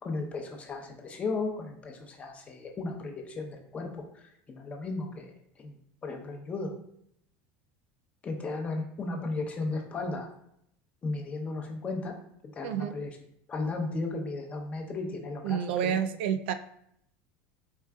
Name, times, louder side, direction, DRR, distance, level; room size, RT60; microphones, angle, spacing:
voice 1, 0.0-5.8 6.0-6.7 8.2-10.3 11.0-12.1 12.5-13.1 13.5-16.0, left 3 dB, 25° left, 2 dB, 0.7 m, -35 dB
voice 2, 15.4-16.5, right 8 dB, 85° right, 9 dB, 0.3 m, -29 dB
4.5 x 3.5 x 2.3 m, 0.73 s
supercardioid pair, 135°, 6 cm